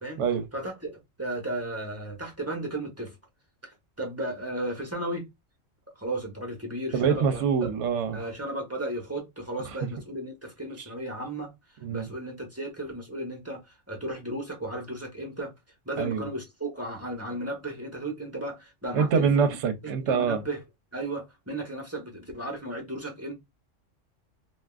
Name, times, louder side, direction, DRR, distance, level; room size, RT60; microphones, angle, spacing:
voice 1, 0.5-3.2 3.6-3.7 4.0-5.2 6.0-7.7 8.1-11.5 11.9-15.5 15.9-19.4 20.0-20.6 20.9-23.3, right 1 dB, 15° right, 0.8 m, -34 dB
voice 2, 6.9-8.2 9.8-9.9 10.8-10.9 11.8-12.1 16.0-16.2 18.9-20.4, right 6 dB, 70° right, 0.9 m, -25 dB
3.4 x 2.5 x 2.3 m
omnidirectional pair, 1.3 m